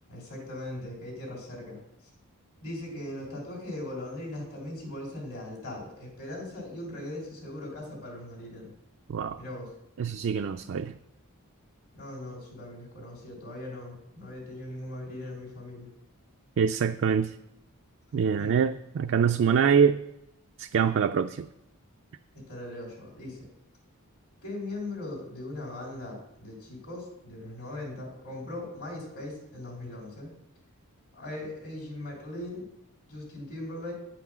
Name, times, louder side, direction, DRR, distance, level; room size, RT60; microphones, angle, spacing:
voice 1, 0.1-1.8 2.6-8.7 9.3-9.7 11.9-15.9 18.4-18.6 22.3-23.5 24.4-30.3 31.1-32.6 33.1-33.9, left 1 dB, 70° left, -2 dB, 3.3 m, -39 dB
voice 2, 10.0-11.0 16.6-17.3 18.1-20.0 20.6-21.5, right 7 dB, 55° right, 6 dB, 0.3 m, -24 dB
9.1 x 5.9 x 6.1 m, 0.82 s
head